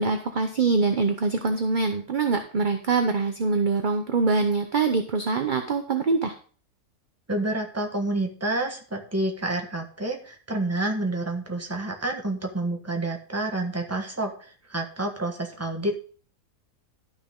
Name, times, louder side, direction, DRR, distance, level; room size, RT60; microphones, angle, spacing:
voice 1, 0.0-6.3, right 4 dB, 40° right, 6 dB, 0.7 m, -24 dB
voice 2, 7.3-15.9, right 2 dB, 10° right, 3 dB, 1.3 m, -29 dB
12.0 x 6.3 x 3.7 m, 0.41 s
omnidirectional pair, 1.7 m